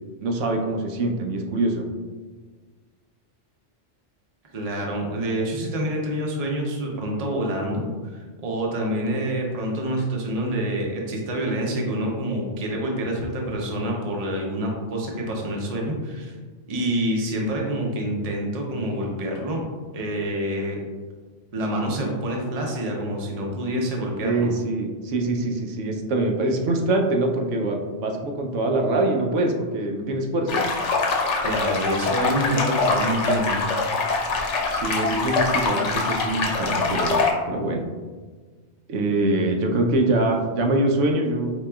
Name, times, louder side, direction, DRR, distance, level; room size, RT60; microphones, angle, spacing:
voice 1, 0.2-1.8 24.2-30.6 34.7-37.2 37.5-37.8 38.9-41.5, right 2 dB, 90° right, 2 dB, 0.9 m, -24 dB
voice 2, 4.5-16.4 16.7-19.6 19.9-20.8 21.5-24.5 31.4-33.7, right 1 dB, 40° right, -1 dB, 0.6 m, -27 dB
sound 1, 30.5-37.3, left 3 dB, 80° left, 0.9 m, -24 dB
4.6 x 3.0 x 2.2 m, 1.4 s
omnidirectional pair, 1.2 m